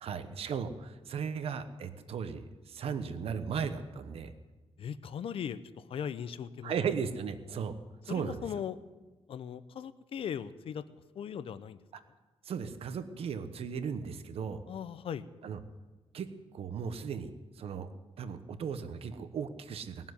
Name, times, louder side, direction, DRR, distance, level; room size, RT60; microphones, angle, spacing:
voice 1, 0.0-4.3 6.6-7.7 8.0-8.5 12.4-14.6 15.4-15.6 16.1-17.3 17.6-17.9 18.2-20.1, right 6 dB, 65° right, 10 dB, 1.1 m, -36 dB
voice 2, 4.8-5.6 5.9-6.7 8.1-8.8 9.3-10.8 11.2-11.8 14.7-15.3, left 8 dB, 60° left, 14 dB, 0.7 m, -38 dB
19.5 x 7.3 x 9.6 m, 1.3 s
wide cardioid pair, 175°, 11 cm